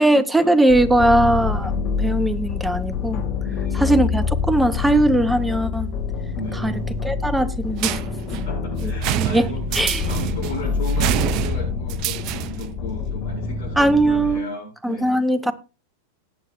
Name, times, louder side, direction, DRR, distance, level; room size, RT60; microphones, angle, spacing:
voice 1, 0.0-1.7 2.0-3.3 3.7-5.9 6.5-6.7 7.0-8.0 8.8-8.9 9.2-9.5 9.7-10.0 13.8-14.5 14.8-15.5, right 1 dB, 5° right, 1.0 m, -19 dB
sound 1, 0.7-14.4, left 5 dB, 45° left, 2.5 m, -26 dB
voice 2, 3.4-3.9 6.3-6.8 8.3-15.2, left 3 dB, 60° left, 7.4 m, -35 dB
sound 2, 7.8-12.8, right 14 dB, 45° right, 0.5 m, -27 dB
18.5 x 8.2 x 2.7 m
figure-of-eight pair, 90°, 0 cm